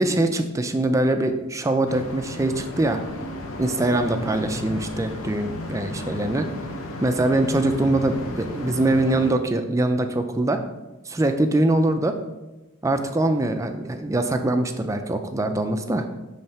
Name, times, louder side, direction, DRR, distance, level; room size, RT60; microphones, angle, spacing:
voice 1, 0.0-3.0 3.6-6.5 7.0-10.6 11.1-12.2 12.8-16.1, right 2 dB, 15° right, 7 dB, 0.3 m, -23 dB
sound 1, 1.9-9.3, left 1 dB, 75° left, 0.8 m, -34 dB
7.1 x 3.2 x 5.4 m, 1.1 s
head